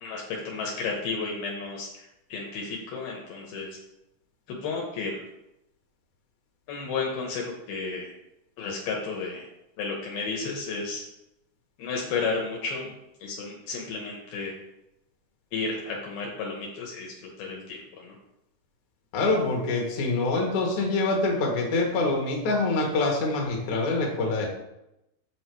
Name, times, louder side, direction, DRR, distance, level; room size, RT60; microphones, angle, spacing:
voice 1, 0.0-3.7 4.5-5.2 6.7-8.1 8.6-9.4 9.8-11.0 11.8-12.9 13.2-14.5 15.5-18.2, left 4 dB, 75° left, -1 dB, 2.9 m, -32 dB
voice 2, 19.1-24.5, left 3 dB, 55° left, 1 dB, 2.6 m, -25 dB
7.6 x 6.4 x 4.6 m, 0.87 s
omnidirectional pair, 4.7 m